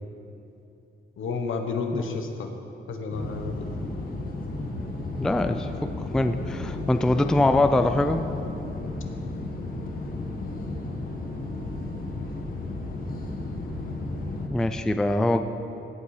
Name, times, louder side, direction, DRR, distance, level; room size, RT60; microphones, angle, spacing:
voice 1, 1.2-2.5 2.9-4.0, left 4 dB, 70° left, 5 dB, 1.2 m, -31 dB
sound 1, 3.1-14.5, left 2 dB, 40° left, 1.4 m, -33 dB
voice 2, 5.2-5.7 6.0-8.2 14.5-15.4, left 2 dB, 5° left, 8 dB, 0.3 m, -23 dB
16.5 x 8.4 x 4.9 m, 2.8 s
wide cardioid pair, 150°, 21 cm